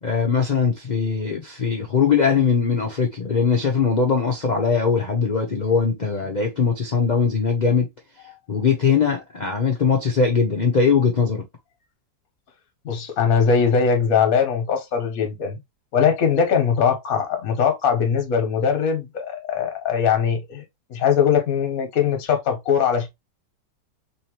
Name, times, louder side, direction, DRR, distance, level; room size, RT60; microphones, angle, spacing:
voice 1, 0.0-7.9 8.5-11.4, left 5 dB, 80° left, 0.4 m, -21 dB
voice 2, 12.8-15.6 15.9-20.6 20.9-23.1, left 6 dB, 55° left, 1.4 m, -21 dB
3.7 x 2.8 x 3.0 m
omnidirectional pair, 1.9 m